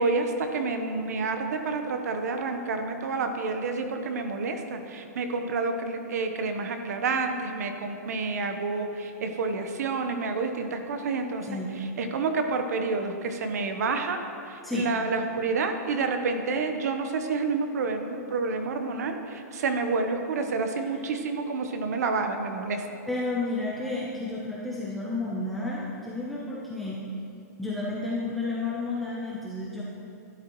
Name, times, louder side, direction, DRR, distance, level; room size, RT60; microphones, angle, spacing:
voice 1, 0.0-22.8, right 4 dB, 70° right, 6 dB, 1.0 m, -29 dB
voice 2, 23.1-27.0 27.6-29.8, left 2 dB, ahead, -7 dB, 0.8 m, -31 dB
12.0 x 10.5 x 3.1 m, 2.7 s
hypercardioid pair, 170°, 9 cm